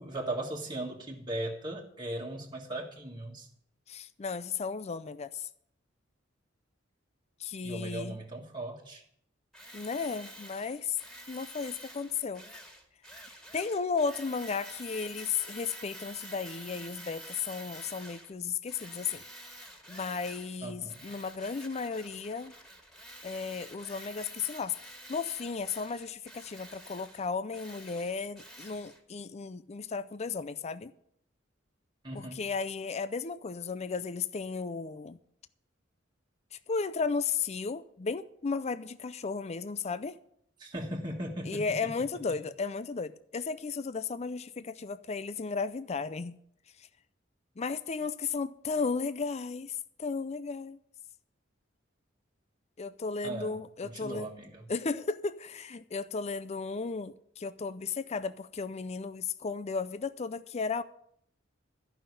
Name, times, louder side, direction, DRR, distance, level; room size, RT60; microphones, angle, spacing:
voice 1, 0.0-3.5 7.6-9.0 20.6-21.0 32.0-32.4 40.6-41.7 53.2-53.6 53.8-54.7, right 1 dB, 25° right, 1.7 m, -38 dB
voice 2, 3.9-5.5 7.4-8.2 9.7-11.0 11.3-12.4 13.5-19.2 19.9-22.5 23.2-24.7 25.1-30.9 32.1-35.2 36.5-40.2 41.5-46.4 46.8-46.9 47.6-50.8 52.8-54.3 54.7-60.8, left 5 dB, 35° left, 0.5 m, -34 dB
Tools, 9.5-18.3 18.7-20.6 20.9-29.0, equal, ahead, 2.3 m, -48 dB
13.5 x 5.7 x 9.6 m
head